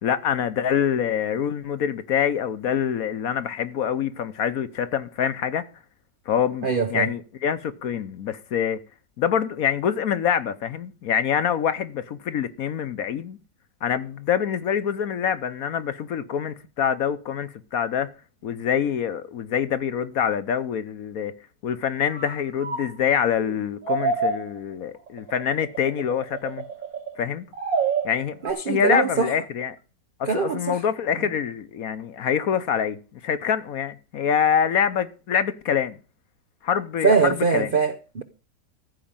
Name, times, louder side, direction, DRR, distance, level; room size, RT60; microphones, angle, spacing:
voice 1, 0.0-5.6 6.3-8.8 9.2-13.4 13.8-18.1 18.4-21.3 21.6-26.6 27.2-27.5 28.0-28.4 28.7-29.8 30.2-33.0 33.2-36.0 36.6-37.7, left 8 dB, 60° left, 1.1 m, -25 dB
voice 2, 6.6-7.1 28.4-29.3 30.2-30.8 37.0-38.2, right 5 dB, 65° right, 0.5 m, -22 dB
sound 1, 22.1-22.9 23.4-23.6 23.8-24.6 25.1-27.2 27.5-28.5, right 4 dB, 80° right, 3.1 m, -27 dB
14.5 x 4.9 x 8.8 m
omnidirectional pair, 2.0 m